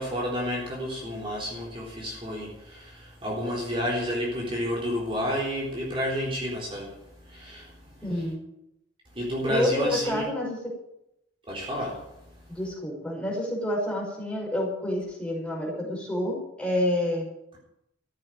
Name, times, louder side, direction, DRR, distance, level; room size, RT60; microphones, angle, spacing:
voice 1, 0.0-8.2 9.2-10.3 11.5-12.0, equal, 30° right, -4 dB, 3.9 m, -31 dB
voice 2, 8.0-8.4 9.5-10.5 12.5-17.3, left 1 dB, 5° left, -2 dB, 5.4 m, -28 dB
14.5 x 8.5 x 9.3 m, 0.82 s
head